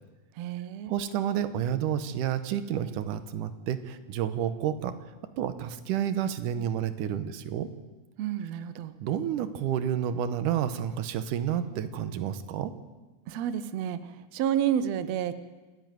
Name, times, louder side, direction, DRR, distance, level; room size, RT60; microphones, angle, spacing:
voice 1, 0.4-0.9 8.2-9.0 13.3-15.3, right 9 dB, 90° right, 13 dB, 1.4 m, -30 dB
voice 2, 0.9-5.0 5.4-7.7 9.0-12.7, right 9 dB, 70° right, 12 dB, 2.2 m, -30 dB
28.0 x 10.5 x 9.3 m, 1.2 s
omnidirectional pair, 4.3 m